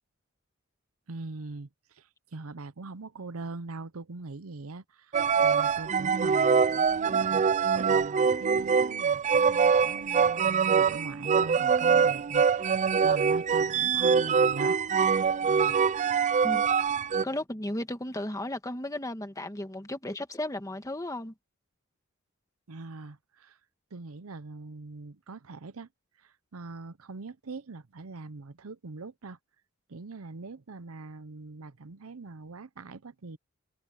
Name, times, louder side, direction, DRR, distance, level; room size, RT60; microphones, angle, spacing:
voice 1, 1.1-7.4 7.9-14.8 15.4-15.8 22.7-23.6 23.9-25.9 26.2-29.4 29.9-33.4, right 3 dB, 85° right, 0.8 m, -42 dB
sound 1, 5.1-17.2, right 6 dB, 35° right, 0.3 m, -24 dB
voice 2, 17.2-21.3, left 1 dB, 15° left, 1.7 m, -34 dB
head